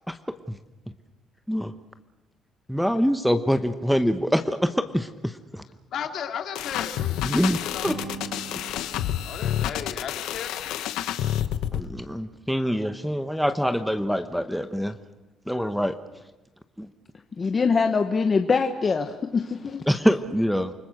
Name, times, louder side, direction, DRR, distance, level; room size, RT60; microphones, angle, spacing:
voice 1, 2.7-5.6 7.2-7.6 7.8-8.0 11.2-11.3 11.7-15.0 15.5-15.9 16.8-16.9 19.9-20.7, equal, ahead, 8 dB, 0.9 m, -25 dB
voice 2, 5.9-7.2 7.6-7.9 9.2-10.8, left 8 dB, 60° left, 5 dB, 2.7 m, -35 dB
sound 1, 6.6-11.9, left 11 dB, 90° left, 1.2 m, -29 dB
Acoustic guitar, 7.8-11.7, right 4 dB, 70° right, 6.8 m, -43 dB
voice 3, 17.4-19.8, left 5 dB, 30° left, 6 dB, 1.2 m, -23 dB
29.0 x 20.0 x 6.6 m, 1.0 s
cardioid pair, 135°, 0 cm